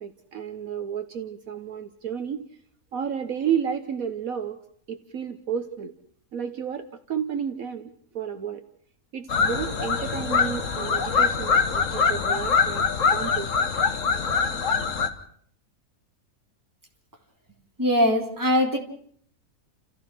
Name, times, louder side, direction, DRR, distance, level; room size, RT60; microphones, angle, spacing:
voice 1, 0.0-2.4 2.9-4.6 4.9-5.9 6.3-8.6 9.1-13.5, right 8 dB, 65° right, 7 dB, 1.5 m, -31 dB
sound 1, 9.3-15.1, left 5 dB, 55° left, 1.8 m, -23 dB
voice 2, 17.8-18.8, equal, 10° right, -1 dB, 3.6 m, -21 dB
30.0 x 15.0 x 6.2 m, 0.63 s
omnidirectional pair, 1.6 m